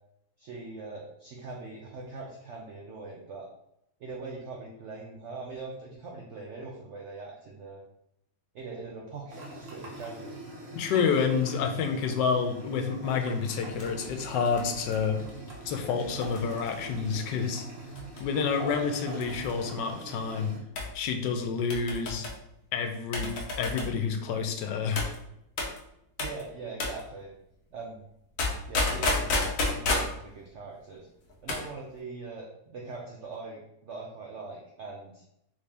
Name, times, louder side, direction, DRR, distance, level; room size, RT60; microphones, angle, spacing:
voice 1, 0.4-3.5 4.0-7.8 8.5-10.3 26.2-27.3 27.7-28.0 28.7-31.1 31.4-35.2, right 3 dB, 75° right, -1 dB, 0.6 m, -42 dB
sound 1, 9.3-20.6, right 1 dB, 50° right, 0.9 m, -42 dB
voice 2, 10.7-15.2 15.6-17.7 18.2-20.5 20.9-22.3 22.7-23.3 23.6-25.1, left 6 dB, 85° left, 6 dB, 1.2 m, -29 dB
sound 2, 13.7-17.1 18.0-18.4 18.7-18.8 19.2-19.6 20.8-21.0 21.7-22.4 23.1-24.0 25.0-25.2 25.6-25.8 26.2-26.4 26.8-27.0 28.4-30.2 31.3-31.7 31.9-32.0, left 2 dB, 60° left, 1.0 m, -31 dB
3.5 x 2.7 x 3.3 m, 0.79 s
omnidirectional pair, 1.8 m